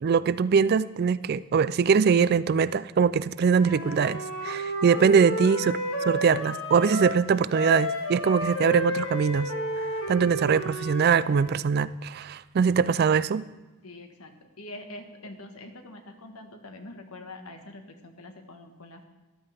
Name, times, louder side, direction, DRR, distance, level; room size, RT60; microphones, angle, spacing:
voice 1, 0.0-5.8 6.1-9.5 10.1-13.4, right 6 dB, 45° right, 17 dB, 0.3 m, -22 dB
Wind instrument woodwind instrument, 3.4-7.2 7.5-11.5, equal, 60° left, 1.6 m, -32 dB
voice 2, 13.8-14.3 14.6-19.0, left 2 dB, 75° left, 5 dB, 1.5 m, -44 dB
14.0 x 12.0 x 3.5 m, 1.1 s
head